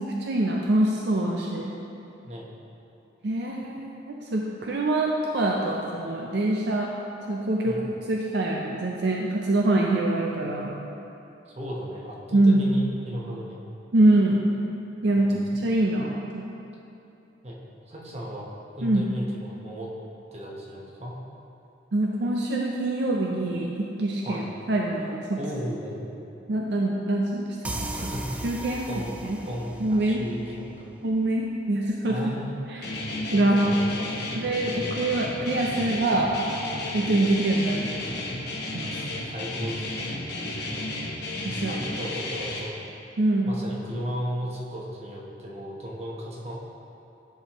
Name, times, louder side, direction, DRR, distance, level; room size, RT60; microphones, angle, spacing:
voice 1, 0.0-1.7 3.2-6.9 7.3-7.8 8.1-10.7 12.3-12.7 13.9-14.4 15.0-16.4 18.8-19.1 21.9-24.4 24.7-25.2 26.5-28.1 28.4-28.9 29.2-29.4 29.8-30.2 31.0-32.2 32.7-32.9 33.3-33.6 34.3-36.3 36.9-37.9 38.7-38.9 41.4-41.8 43.2-43.5, right 2 dB, 65° right, -1 dB, 0.5 m, -24 dB
voice 2, 11.6-13.6 15.1-15.6 17.4-17.6 17.8-19.9 20.3-21.2 24.2-24.5 25.3-26.2 27.9-28.4 28.9-29.1 29.5-30.9 32.0-32.6 33.6-34.4 39.2-40.2 41.7-42.8 43.4-46.5, equal, 35° right, -3 dB, 1.0 m, -35 dB
sound 1, 27.6-31.2, right 1 dB, 10° right, 0.3 m, -37 dB
Guitar, 32.8-42.6, left 2 dB, 60° left, 1.0 m, -33 dB
11.0 x 4.6 x 3.0 m, 3.0 s
head